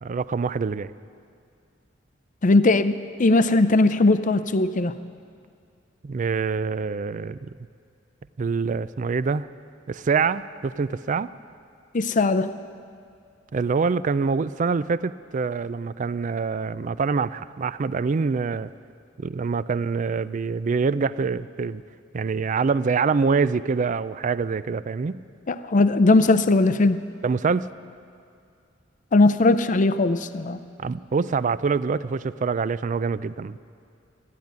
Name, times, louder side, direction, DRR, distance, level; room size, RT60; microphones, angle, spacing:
voice 1, 0.0-0.9 6.0-7.5 8.4-9.5 9.9-11.3 13.5-18.7 19.2-21.8 22.1-25.2 27.2-27.7 30.8-33.6, right 5 dB, 40° right, 16 dB, 0.4 m, -25 dB
voice 2, 2.4-4.9 11.9-12.5 25.5-27.0 29.1-30.6, left 2 dB, 40° left, 13 dB, 0.6 m, -19 dB
14.5 x 10.5 x 9.5 m, 2.4 s
head